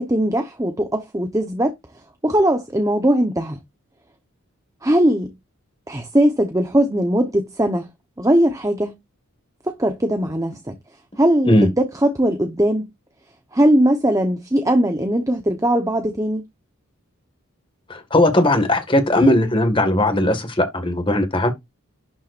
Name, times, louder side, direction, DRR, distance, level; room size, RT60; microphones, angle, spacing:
voice 1, 0.0-1.7 2.2-3.6 4.8-5.3 5.9-7.9 8.2-9.0 9.6-10.7 11.2-12.9 13.5-16.4, right 1 dB, 15° right, 1.0 m, -19 dB
voice 2, 17.9-21.5, left 1 dB, 25° left, 1.8 m, -18 dB
11.5 x 7.4 x 2.6 m
head